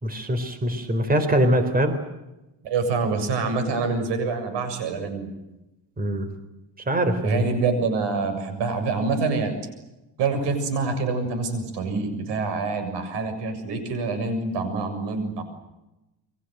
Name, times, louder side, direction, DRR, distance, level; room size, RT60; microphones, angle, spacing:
voice 1, 0.0-1.9 6.0-6.3 6.9-7.4, right 1 dB, 20° right, 9 dB, 4.0 m, -23 dB
voice 2, 2.6-5.3 7.2-9.5 10.2-15.4, right 4 dB, 90° right, 9 dB, 7.2 m, -26 dB
29.0 x 23.5 x 8.0 m, 0.99 s
cardioid pair, 135°, 41 cm